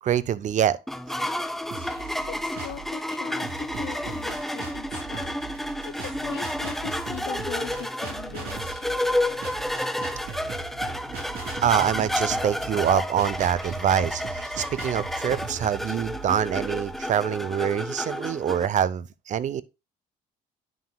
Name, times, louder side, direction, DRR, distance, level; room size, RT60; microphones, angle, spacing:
voice 1, 0.0-0.8 1.1-1.2 11.6-19.6, right 9 dB, 45° right, 0.5 m, -25 dB
sound 1, 0.9-18.7, left 1 dB, ahead, 0.5 m, -31 dB
voice 2, 1.7-5.4 5.7-8.6, left 14 dB, 70° left, 0.7 m, -41 dB
sound 2, 1.7-2.9 3.4-17.1, right 6 dB, 65° right, 3.5 m, -39 dB
9.3 x 5.9 x 2.2 m
cardioid pair, 110°, 17 cm